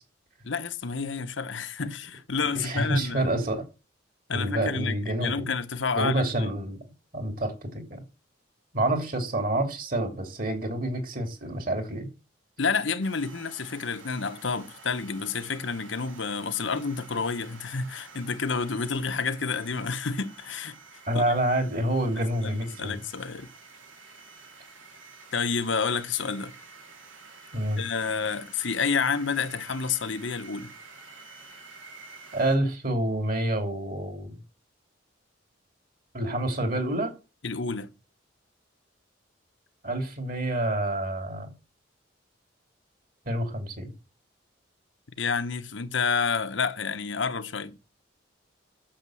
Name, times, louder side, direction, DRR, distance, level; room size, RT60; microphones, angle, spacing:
voice 1, 0.4-3.3 4.3-6.5 12.6-20.8 21.1-21.2 22.4-23.5 25.3-26.5 27.8-30.7 37.4-37.9 45.2-47.8, left 5 dB, 80° left, 1.1 m, -29 dB
voice 2, 2.5-3.6 4.3-5.5 5.9-6.8 7.1-8.0 8.7-12.1 21.1-23.0 27.5-27.8 32.3-34.3 36.1-37.1 39.8-41.5 43.3-43.9, right 1 dB, 45° right, 2.8 m, -28 dB
sound 1, 13.0-32.6, right 4 dB, 85° right, 3.6 m, -49 dB
11.5 x 6.8 x 7.6 m
head